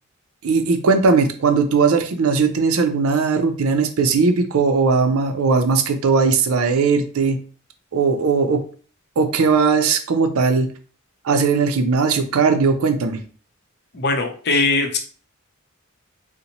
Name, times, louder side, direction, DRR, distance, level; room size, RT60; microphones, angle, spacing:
voice 1, 0.4-7.4 7.9-8.6 9.2-10.7 11.2-13.2, right 4 dB, 85° right, 7 dB, 0.5 m, -18 dB
voice 2, 13.9-15.0, left 3 dB, 55° left, 3 dB, 0.6 m, -20 dB
4.0 x 2.1 x 2.9 m, 0.41 s
head